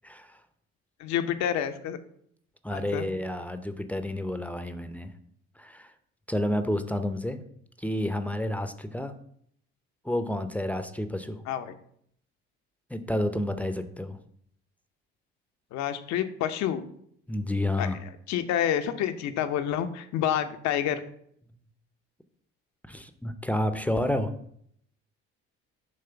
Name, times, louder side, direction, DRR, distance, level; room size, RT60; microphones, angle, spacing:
voice 1, 0.0-0.4 2.6-5.1 5.6-5.9 6.3-7.4 7.8-9.1 10.0-11.4 12.9-14.2 17.3-18.0 22.9-24.3, left 1 dB, 5° left, 9 dB, 0.7 m, -30 dB
voice 2, 1.0-2.0 2.7-3.1 11.5-11.7 15.7-16.8 17.8-17.9 18.3-21.0, left 10 dB, 65° left, 9 dB, 0.8 m, -28 dB
7.6 x 3.1 x 5.8 m, 0.67 s
hypercardioid pair, 70°, 29 cm